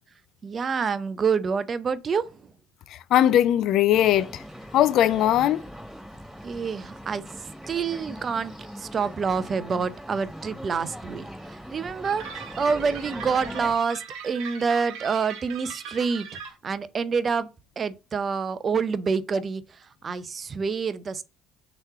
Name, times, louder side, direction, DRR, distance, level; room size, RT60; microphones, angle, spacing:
voice 1, 0.4-2.2 6.4-7.2 7.7-8.5 8.9-11.2 11.7-16.3 16.6-17.5 17.8-19.6 20.0-21.2, right 5 dB, 35° right, 0.6 m, -27 dB
voice 2, 3.1-4.3 4.7-5.6, left 11 dB, 55° left, 0.3 m, -19 dB
sound 1, 3.9-13.7, equal, ahead, 2.8 m, -41 dB
sound 2, 12.0-16.5, right 7 dB, 60° right, 1.2 m, -40 dB
6.5 x 3.1 x 5.7 m
figure-of-eight pair, 60°, 0 cm